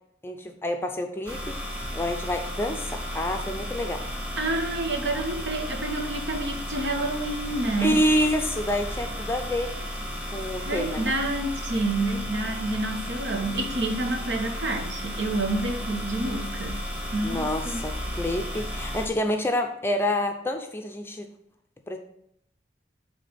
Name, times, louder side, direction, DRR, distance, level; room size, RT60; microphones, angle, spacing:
voice 1, 0.2-4.0 7.8-9.7 10.3-11.1 17.2-21.3 21.9-22.0, left 1 dB, 15° left, 4 dB, 0.4 m, -28 dB
sound 1, 1.3-19.1, equal, 5° right, 1.0 m, -34 dB
voice 2, 4.4-8.0 10.6-16.8 17.1-17.8, right 2 dB, 90° right, 4 dB, 1.1 m, -28 dB
8.1 x 3.3 x 5.1 m, 0.73 s
head